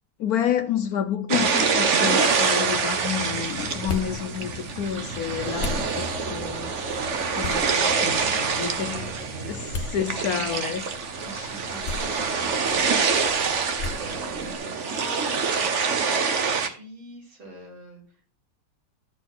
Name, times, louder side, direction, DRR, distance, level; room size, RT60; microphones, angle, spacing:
voice 1, 0.2-6.8 7.3-9.1 9.5-10.9 11.3-11.5, left 9 dB, 70° left, 0.8 m, -29 dB
sound 1, 1.3-16.7, right 5 dB, 50° right, 0.9 m, -26 dB
sound 2, 3.4-14.5, left 4 dB, 45° left, 0.9 m, -38 dB
voice 2, 5.3-5.8 7.9-10.5 11.2-16.1 16.4-18.0, right 1 dB, 70° right, 4.6 m, -43 dB
12.5 x 4.4 x 6.0 m
omnidirectional pair, 2.3 m